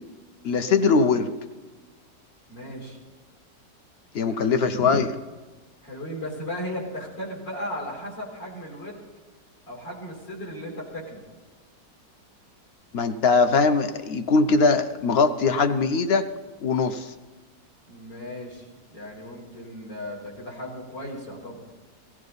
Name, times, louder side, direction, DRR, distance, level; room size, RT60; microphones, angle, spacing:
voice 1, 0.4-1.3 4.1-5.1 12.9-16.3 16.6-17.1, left 4 dB, 55° left, 9 dB, 0.7 m, -21 dB
voice 2, 2.5-3.0 5.8-9.0 9.7-11.2 17.9-21.6, equal, 80° left, -3 dB, 4.8 m, -36 dB
17.0 x 15.0 x 4.0 m, 1.3 s
omnidirectional pair, 1.9 m